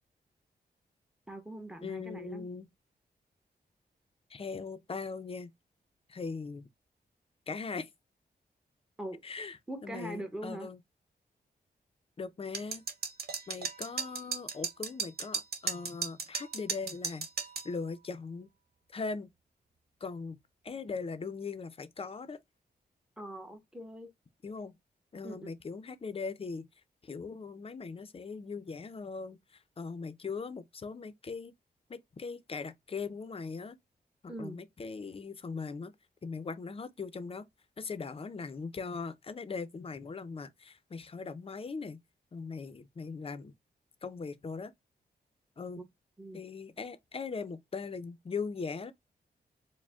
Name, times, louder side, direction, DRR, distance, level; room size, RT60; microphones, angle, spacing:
voice 1, 1.3-2.5 9.0-9.2 9.7-10.7 23.2-24.1 25.2-25.5 34.3-34.6 46.2-46.4, right 1 dB, 5° right, 0.9 m, -42 dB
voice 2, 1.8-2.7 4.3-5.5 6.1-6.7 7.5-7.9 9.2-10.8 12.2-12.8 13.5-17.3 17.6-18.5 18.9-19.3 20.0-20.4 20.6-22.4 24.4-24.8 25.1-26.7 27.0-31.5 31.9-33.8 34.4-35.9 36.2-37.5 37.8-42.0 42.3-43.5 44.0-44.7 45.6-45.9 46.3-48.9, left 4 dB, 35° left, 0.6 m, -40 dB
sound 1, 12.5-17.7, right 6 dB, 70° right, 1.0 m, -35 dB
4.8 x 2.1 x 3.5 m
wide cardioid pair, 125°, 17 cm